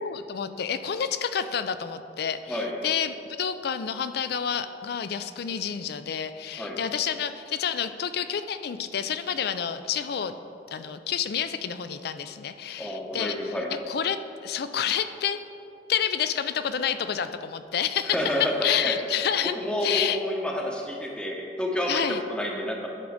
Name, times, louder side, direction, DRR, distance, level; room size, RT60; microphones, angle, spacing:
voice 1, 0.0-10.3 10.7-13.6 13.9-15.4 15.9-19.5 19.8-20.2 21.9-22.2, left 8 dB, 65° left, 11 dB, 0.4 m, -29 dB
voice 2, 12.8-13.7 18.1-19.0 19.6-22.9, equal, 5° left, -1 dB, 0.8 m, -29 dB
10.0 x 3.9 x 6.3 m, 2.7 s
head